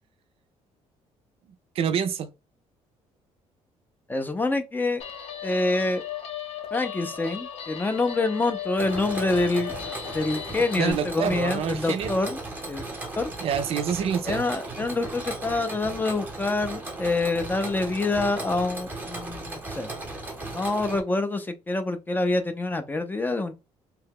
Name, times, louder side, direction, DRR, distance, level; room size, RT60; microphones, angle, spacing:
voice 1, 1.8-2.3 10.8-12.1 13.4-14.9, right 8 dB, 55° right, 0.4 m, -27 dB
voice 2, 4.1-5.0 5.4-6.0 6.7-9.7 10.1-12.4 12.7-12.8 13.2-13.3 14.2-19.9 20.5-23.5, left 2 dB, 15° left, 0.4 m, -26 dB
Guitar, 5.0-10.9, left 9 dB, 60° left, 0.7 m, -36 dB
Mechanisms, 8.8-21.0, right 2 dB, 15° right, 0.8 m, -36 dB
2.8 x 2.1 x 3.5 m
cardioid pair, 125°, 12 cm